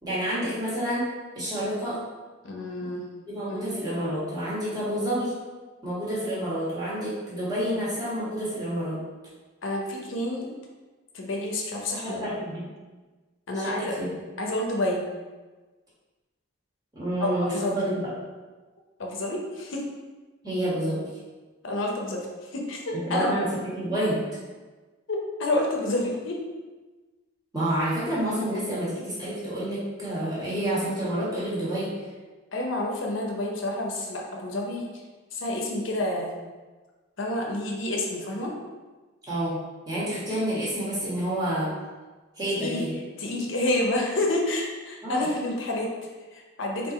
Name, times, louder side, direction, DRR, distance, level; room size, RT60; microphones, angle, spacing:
voice 1, 0.0-1.1 1.3-2.0 3.3-5.3 5.8-9.0 12.0-12.7 13.5-14.1 16.9-18.0 20.4-21.1 22.9-24.2 27.5-31.9 39.3-39.6 39.9-41.7 42.4-42.9 45.0-45.2, right 1 dB, 20° right, -9 dB, 1.3 m, -29 dB
voice 2, 2.4-3.0 3.5-3.9 9.6-10.5 11.1-12.3 13.5-13.8 14.4-15.1 17.2-17.8 19.0-19.8 21.6-23.3 25.1-26.4 32.5-35.0 35.3-36.3 37.2-38.5 42.5-42.9 43.2-46.9, left 1 dB, 70° left, 0 dB, 0.6 m, -29 dB
3.7 x 2.6 x 4.1 m, 1.3 s
head